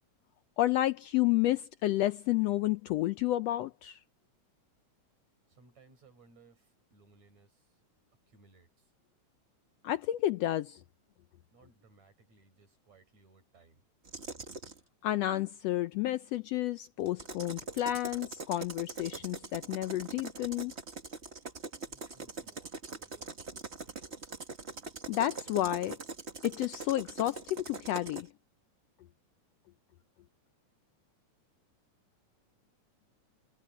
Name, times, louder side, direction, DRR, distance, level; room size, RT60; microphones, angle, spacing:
voice 1, 0.6-4.0 9.8-10.8 15.0-20.7 25.1-26.0 26.4-28.3, left 14 dB, 75° left, 1.5 m, -31 dB
voice 2, 5.5-7.8 8.3-8.9 11.5-13.8 21.8-23.4 23.8-24.1, right 4 dB, 65° right, 7.3 m, -63 dB
sound 1, 14.0-14.8 17.1-28.3, right 3 dB, 30° right, 1.4 m, -43 dB
omnidirectional pair, 3.4 m